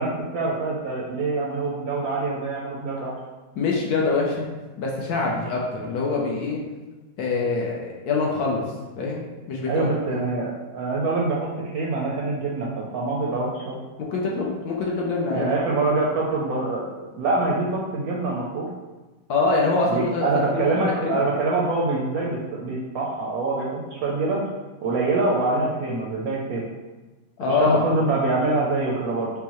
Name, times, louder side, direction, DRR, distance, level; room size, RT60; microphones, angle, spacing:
voice 1, 0.0-3.1 9.7-11.5 11.7-13.8 15.3-18.7 19.9-24.4 24.8-26.6 27.5-29.3, right 3 dB, 70° right, -3 dB, 0.9 m, -25 dB
voice 2, 3.6-4.5 4.8-6.6 7.2-8.6 9.0-10.2 14.0-15.5 19.3-21.2 27.4-27.8, left 3 dB, 70° left, -2 dB, 1.0 m, -24 dB
5.3 x 2.1 x 2.9 m, 1.2 s
omnidirectional pair, 1.9 m